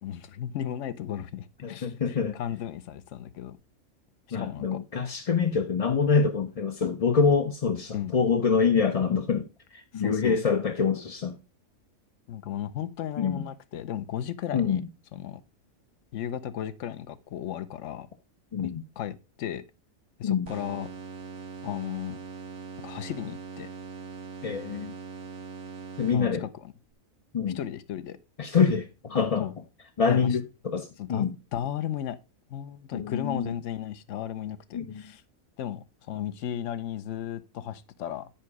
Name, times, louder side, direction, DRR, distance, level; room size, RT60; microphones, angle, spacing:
voice 1, 0.0-3.6 4.3-4.8 7.9-8.1 9.9-10.4 12.3-14.8 15.1-15.4 16.1-18.1 18.6-19.6 20.2-20.9 21.6-22.2 22.8-23.7 26.1-26.7 27.5-28.2 29.4-29.5 30.1-30.4 31.0-32.2 32.5-35.2 35.6-38.3, left 10 dB, 65° left, 1.0 m, -35 dB
voice 2, 1.6-2.4 4.3-9.4 9.7-11.4 13.2-13.4 14.5-14.9 18.5-18.8 20.2-20.5 24.4-24.9 26.0-26.4 27.3-27.6 28.4-29.5 30.0-31.4 32.9-33.6 34.7-35.0, left 5 dB, 40° left, 0.5 m, -25 dB
sound 1, 20.5-26.6, right 5 dB, 60° right, 1.3 m, -41 dB
10.5 x 4.9 x 4.7 m
omnidirectional pair, 1.5 m